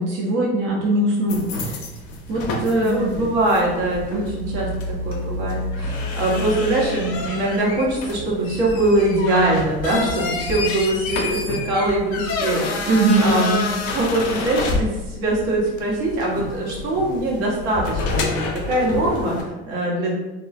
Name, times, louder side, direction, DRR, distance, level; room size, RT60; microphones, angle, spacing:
voice 1, 0.0-1.8 2.3-3.1 4.1-4.2 12.9-13.4, right 2 dB, 40° right, -3 dB, 0.6 m, -21 dB
sound 1, 1.3-19.4, left 3 dB, 50° left, 0.6 m, -28 dB
voice 2, 2.8-12.9 13.2-20.1, right 1 dB, 65° right, -4 dB, 1.1 m, -22 dB
3.0 x 2.3 x 2.5 m, 1.1 s
figure-of-eight pair, 65°, 30 cm